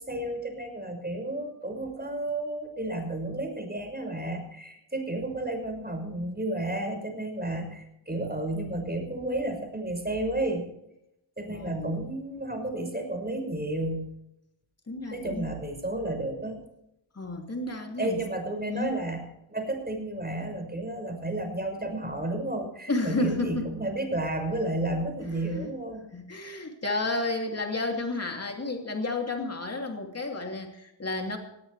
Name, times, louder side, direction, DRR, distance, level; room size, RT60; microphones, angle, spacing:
voice 1, 0.0-10.6 11.4-14.1 15.1-16.6 18.0-26.0, right 1 dB, 20° right, 2 dB, 6.0 m, -32 dB
voice 2, 11.5-12.0 14.9-15.5 17.1-18.2 18.7-18.9 22.9-23.7 25.3-25.7 26.1-31.4, left 2 dB, 35° left, 2 dB, 2.9 m, -31 dB
20.0 x 17.5 x 3.4 m, 0.82 s
wide cardioid pair, 90°, 44 cm